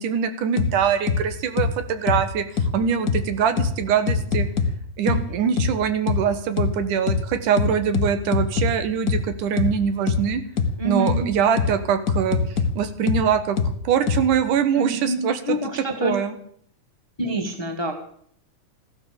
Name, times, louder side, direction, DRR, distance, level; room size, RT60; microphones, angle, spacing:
voice 1, 0.0-4.5 5.0-10.4 10.8-12.4 12.8-13.6 13.8-15.6 16.0-16.3, right 7 dB, 90° right, 10 dB, 3.0 m, -23 dB
sound 1, 0.6-0.7 1.1-1.2 1.6-1.7 2.1-2.2 2.6-2.7 3.1-3.2 3.6-3.7 4.1-4.7 5.1-5.2 5.6-5.7 6.1-6.2 6.6-6.7 7.1-7.2 7.6-8.7 9.1-9.2 9.6-9.7 10.1-10.2 10.6-10.7 11.1-11.2 11.6-11.7 12.1-12.7 13.1-13.2 13.6-13.7 14.1-14.2, left 5 dB, 60° left, 0.9 m, -21 dB
voice 2, 5.1-5.4 10.8-11.3 14.7-16.2 17.2-17.9, right 1 dB, 10° left, 4 dB, 1.2 m, -27 dB
15.5 x 12.5 x 7.1 m, 0.63 s
omnidirectional pair, 3.5 m